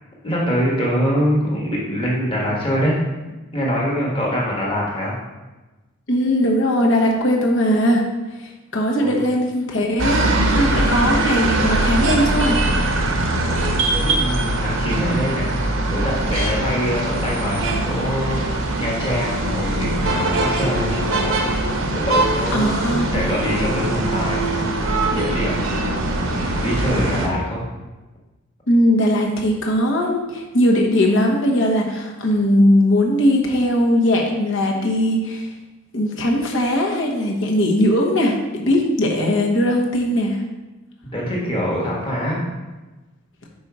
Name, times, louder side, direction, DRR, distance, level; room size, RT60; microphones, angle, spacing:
voice 1, 0.2-3.0 3.5-5.2 9.0-9.2 13.3-15.6 15.9-21.6 21.9-24.6 25.1-25.7 26.1-27.7 41.1-42.4, equal, 25° left, -4 dB, 1.3 m, -24 dB
voice 2, 6.1-8.0 8.4-12.6 22.5-23.2 28.7-35.5 35.9-40.4, equal, 60° left, 0 dB, 1.0 m, -19 dB
sound 1, 10.0-27.3, right 2 dB, 65° right, 0.8 m, -22 dB
5.4 x 4.0 x 4.7 m, 1.2 s
head